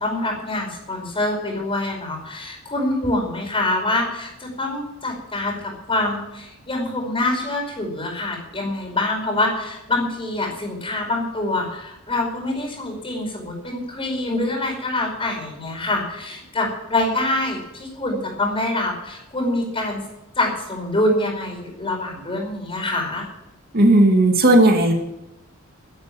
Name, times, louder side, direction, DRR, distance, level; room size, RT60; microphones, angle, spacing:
voice 1, 0.0-20.0 20.4-23.3, left 2 dB, 25° left, 2 dB, 5.1 m, -25 dB
voice 2, 23.7-24.9, right 1 dB, 45° right, 3 dB, 2.7 m, -14 dB
12.5 x 11.5 x 7.4 m, 0.89 s
head